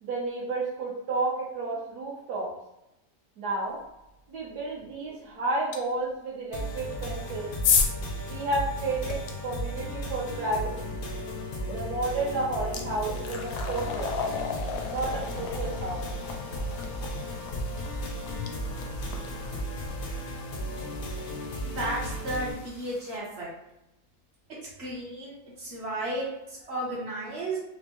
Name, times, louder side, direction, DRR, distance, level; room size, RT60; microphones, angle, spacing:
voice 1, 0.0-2.5 3.4-3.8 4.3-7.5 8.3-11.0 11.7-14.1 14.9-16.0, right 2 dB, 75° right, -5 dB, 1.3 m, -31 dB
sound 1, 5.7-5.8 6.9-9.3 11.6-11.8 12.2-23.2, left 5 dB, 80° left, 1.1 m, -34 dB
sound 2, 6.5-22.5, equal, 65° left, 0.5 m, -35 dB
voice 2, 21.6-23.5 24.8-27.6, right 1 dB, 50° right, -4 dB, 0.9 m, -33 dB
4.4 x 2.0 x 2.9 m, 0.90 s
omnidirectional pair, 1.8 m